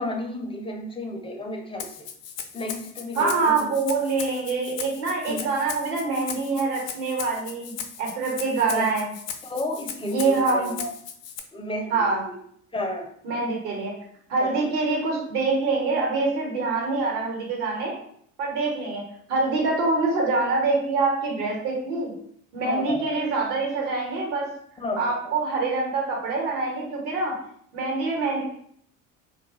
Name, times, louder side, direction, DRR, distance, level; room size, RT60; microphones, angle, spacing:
voice 1, 0.0-2.1 2.5-3.7 5.3-5.5 8.7-8.9 9.4-10.9 11.5-12.4 12.7-13.1 14.4-14.7 22.6-23.2 24.8-25.3, left 1 dB, 15° left, 2 dB, 0.4 m, -32 dB
Rattle (instrument), 1.8-11.4, left 8 dB, 70° left, 0.5 m, -37 dB
voice 2, 3.1-9.1 10.0-10.7 11.9-12.2 13.2-13.9 14.3-17.9 18.4-19.0 19.3-22.1 22.5-24.5 25.0-27.4 27.7-28.4, right 3 dB, 70° right, -2 dB, 1.1 m, -25 dB
2.3 x 2.2 x 2.9 m, 0.65 s
hypercardioid pair, 65°, 41 cm